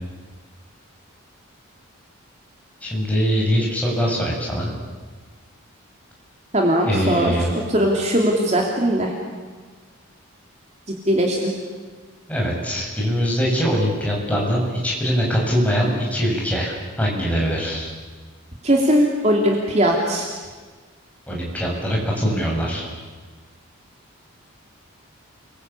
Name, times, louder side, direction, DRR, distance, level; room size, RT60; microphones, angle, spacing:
voice 1, 2.8-4.7 6.8-7.5 12.3-17.9 21.3-22.8, equal, 5° left, -3 dB, 7.2 m, -22 dB
voice 2, 6.5-7.3 7.7-9.1 11.1-11.5 18.6-20.3, equal, 30° right, 0 dB, 3.1 m, -19 dB
29.5 x 22.5 x 8.7 m, 1.4 s
head